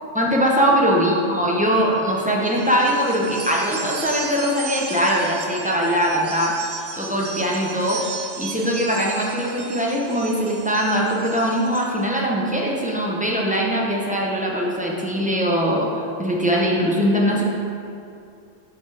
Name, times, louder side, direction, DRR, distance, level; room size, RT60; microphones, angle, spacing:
voice 1, 0.1-6.5 7.0-8.0 8.4-15.9 16.2-17.4, equal, 10° right, -4 dB, 0.7 m, -21 dB
sound 1, 2.5-11.9, right 6 dB, 70° right, 0.9 m, -35 dB
8.5 x 5.1 x 3.4 m, 2.6 s
omnidirectional pair, 1.3 m